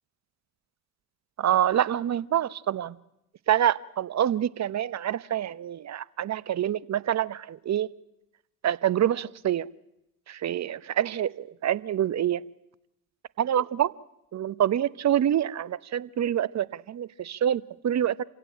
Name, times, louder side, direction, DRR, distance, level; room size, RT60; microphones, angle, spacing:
voice 1, 1.4-2.9 3.5-7.9 8.6-9.7 10.3-12.4 13.4-13.9 14.3-18.2, right 10 dB, 35° right, 20 dB, 0.9 m, -26 dB
27.5 x 16.5 x 8.9 m, 0.86 s
hypercardioid pair, 55°, 45 cm